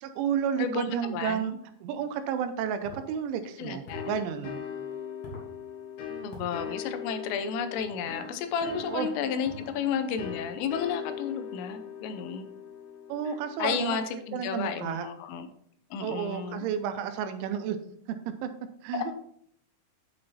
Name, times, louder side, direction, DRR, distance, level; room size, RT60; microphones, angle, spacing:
voice 1, 0.0-1.5 1.8-4.6 8.9-9.1 13.1-14.0 14.3-15.1 16.0-17.8 18.4-18.5 18.8-19.1, right 8 dB, 80° right, 8 dB, 3.0 m, -31 dB
voice 2, 0.6-1.6 3.6-4.2 6.2-12.5 13.6-15.5 15.9-16.7 18.9-19.1, left 7 dB, 90° left, 9 dB, 3.3 m, -32 dB
sound 1, 2.8-3.1 3.8-4.2 5.2-5.5 6.3-6.5 7.8-8.0 8.6-8.9 9.4-9.7 10.2-10.5, equal, 50° left, 2.6 m, -45 dB
sound 2, 3.9-14.4, left 7 dB, 75° left, 3.6 m, -40 dB
9.0 x 5.4 x 4.1 m, 0.68 s
omnidirectional pair, 5.6 m